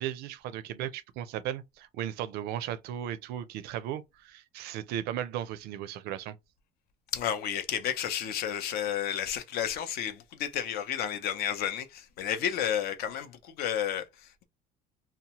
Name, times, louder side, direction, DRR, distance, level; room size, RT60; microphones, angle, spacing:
voice 1, 0.0-6.4, right 11 dB, 70° right, 0.4 m, -36 dB
voice 2, 7.1-14.4, left 9 dB, 65° left, 0.6 m, -32 dB
2.8 x 2.1 x 2.9 m
cardioid pair, 140°, 17 cm